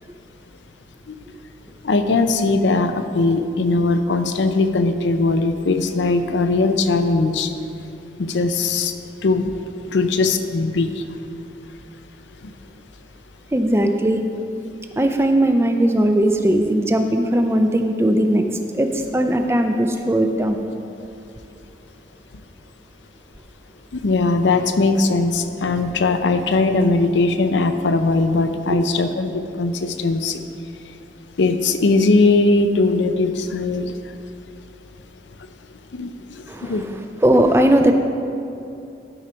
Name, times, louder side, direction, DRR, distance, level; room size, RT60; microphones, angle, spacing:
voice 1, 1.8-7.5 8.2-8.9 9.2-9.5 9.9-10.9 23.9-30.4 31.4-33.9 35.9-36.1 36.6-36.8, left 3 dB, 90° left, 8 dB, 0.5 m, -19 dB
voice 2, 13.5-14.2 15.0-18.5 18.7-20.6 36.5-37.9, right 1 dB, 15° right, 5 dB, 0.4 m, -18 dB
12.0 x 4.3 x 5.1 m, 2.7 s
head